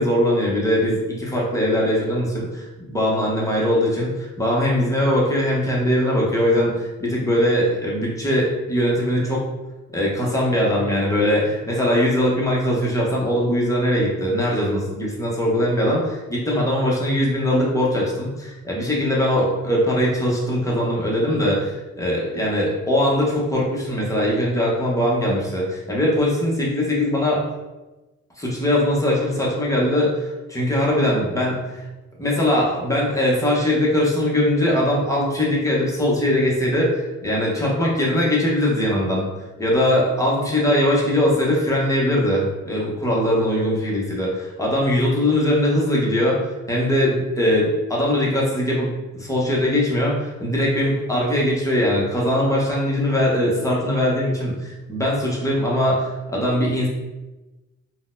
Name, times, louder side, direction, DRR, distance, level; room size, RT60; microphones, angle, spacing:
voice 1, 0.0-9.5 9.9-27.4 28.4-31.8 32.2-39.2 39.6-46.4 46.7-56.9, left 1 dB, 10° left, -4 dB, 0.9 m, -21 dB
3.8 x 2.2 x 2.6 m, 1.1 s
cardioid pair, 90°, 30 cm